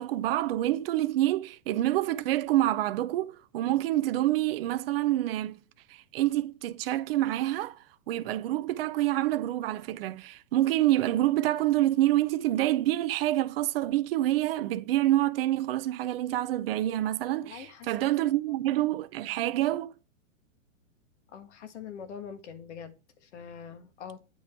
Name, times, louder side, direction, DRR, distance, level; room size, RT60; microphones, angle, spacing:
voice 1, 0.0-5.6 6.1-7.8 8.1-19.9, right 14 dB, 45° right, 0.7 m, -27 dB
voice 2, 17.4-17.9 18.3-18.7 19.4-19.5 21.3-24.2, left 7 dB, 60° left, 1.6 m, -44 dB
8.8 x 4.6 x 4.4 m
hypercardioid pair, 145°, 40 cm